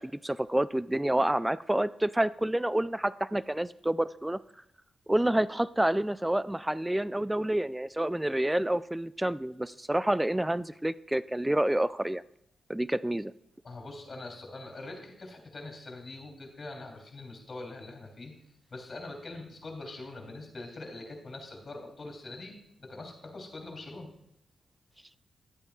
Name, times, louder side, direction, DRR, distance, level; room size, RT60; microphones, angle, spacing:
voice 1, 0.0-4.4 5.1-12.2 12.7-13.3, right 1 dB, 10° right, 17 dB, 0.3 m, -28 dB
voice 2, 13.6-18.3 18.7-24.1, left 2 dB, 45° left, 2 dB, 3.2 m, -43 dB
12.5 x 8.8 x 2.4 m, 0.75 s
supercardioid pair, 40°, 0 cm